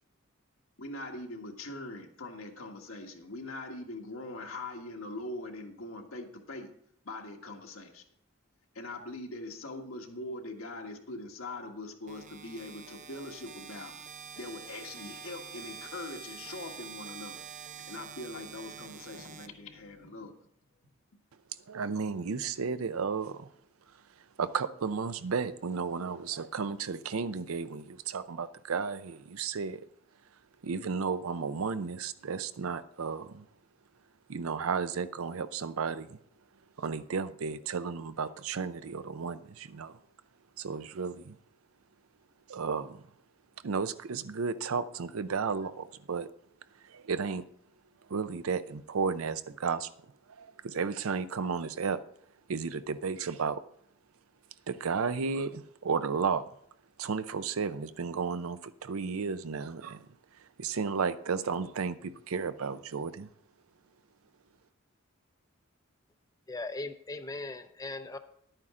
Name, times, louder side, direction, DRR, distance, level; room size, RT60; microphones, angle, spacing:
voice 1, 0.8-6.7 7.0-8.0 8.7-13.9 14.4-17.4 17.9-20.3, left 2 dB, 80° left, 2 dB, 1.6 m, -42 dB
sound 1, 12.1-20.1, right 6 dB, 35° right, 0.5 m, -47 dB
voice 2, 21.7-23.5 24.4-29.8 30.6-33.5 34.3-36.2 36.8-39.9 40.6-41.4 42.5-43.0 43.6-46.3 46.9-47.4 48.1-49.9 50.4-52.0 52.5-53.6 54.7-56.5 57.0-60.0 60.6-63.3, right 5 dB, 90° right, 13 dB, 0.5 m, -33 dB
voice 3, 66.5-68.2, left 2 dB, 15° left, 9 dB, 0.4 m, -38 dB
11.0 x 9.0 x 3.7 m, 0.69 s
head